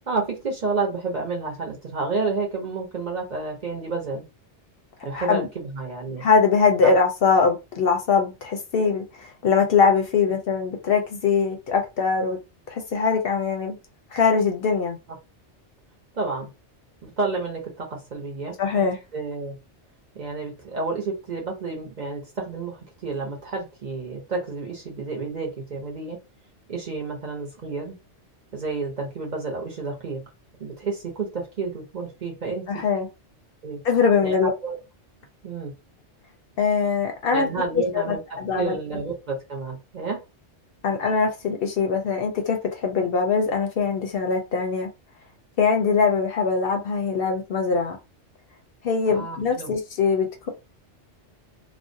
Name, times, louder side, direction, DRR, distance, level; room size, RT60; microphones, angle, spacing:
voice 1, 0.1-4.2 5.0-6.2 6.8-6.9 16.1-16.5 17.0-18.9 19.1-19.6 20.1-26.2 26.7-28.0 28.5-30.2 30.6-32.8 33.6-33.8 34.2-34.8 35.4-35.7 37.3-40.2 49.1-49.7, right 3 dB, 45° right, 0.7 m, -30 dB
voice 2, 5.1-5.5 6.2-12.4 12.7-13.8 14.1-15.0 18.6-19.0 32.7-33.1 33.8-34.5 36.6-37.5 37.8-38.0 38.4-38.8 40.8-44.9 45.6-48.0 48.8-50.5, left 5 dB, 65° left, 0.7 m, -22 dB
2.5 x 2.0 x 2.5 m
omnidirectional pair, 1.2 m